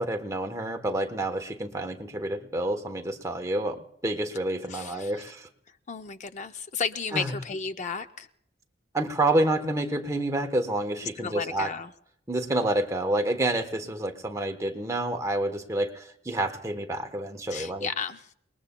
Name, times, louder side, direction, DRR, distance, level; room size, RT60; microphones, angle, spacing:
voice 1, 0.0-5.5 7.1-7.4 8.9-11.7 12.3-17.9, right 1 dB, 15° right, 5 dB, 1.0 m, -28 dB
voice 2, 4.7-5.1 5.9-8.3 11.0-11.9 17.5-18.2, left 5 dB, 40° left, 9 dB, 0.5 m, -33 dB
29.5 x 20.0 x 2.2 m, 0.73 s
head